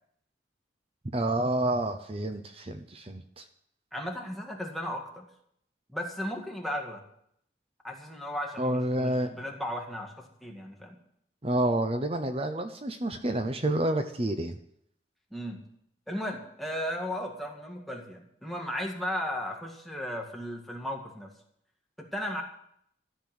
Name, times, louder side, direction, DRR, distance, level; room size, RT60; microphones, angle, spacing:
voice 1, 1.1-3.4 8.6-9.3 11.4-14.6, right 1 dB, 30° right, 7 dB, 0.8 m, -29 dB
voice 2, 3.9-5.3 5.9-7.0 7.8-11.0 15.3-15.6 16.1-21.3 22.0-22.4, equal, ahead, -1 dB, 1.9 m, -35 dB
13.5 x 6.8 x 9.5 m, 0.70 s
head